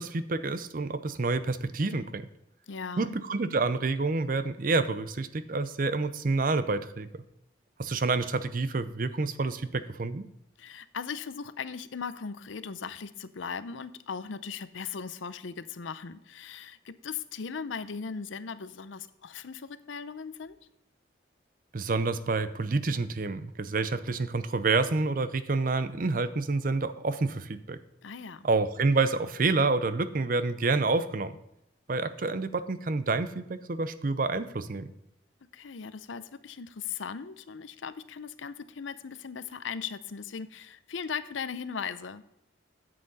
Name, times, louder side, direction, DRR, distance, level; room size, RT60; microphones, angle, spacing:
voice 1, 0.0-2.3 3.0-7.1 7.8-10.3 21.7-27.8 28.4-31.3 31.9-34.9, right 3 dB, 45° right, 13 dB, 0.6 m, -28 dB
voice 2, 2.7-3.2 10.6-20.6 28.0-28.5 35.5-42.2, left 6 dB, 80° left, 14 dB, 0.6 m, -38 dB
9.7 x 7.7 x 4.0 m, 0.83 s
head